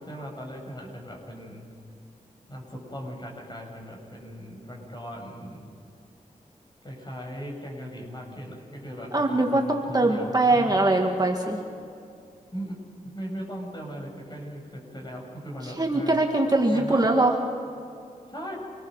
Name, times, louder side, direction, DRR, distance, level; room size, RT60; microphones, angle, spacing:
voice 1, 0.0-1.7 2.5-5.7 6.8-11.1 12.5-12.8 13.0-16.2 16.7-17.1 18.3-18.6, equal, 30° left, 0 dB, 7.3 m, -38 dB
voice 2, 9.1-11.6 15.6-17.4, right 2 dB, 25° right, 1 dB, 2.1 m, -22 dB
27.0 x 20.5 x 6.6 m, 2.6 s
cardioid pair, 60°, 15 cm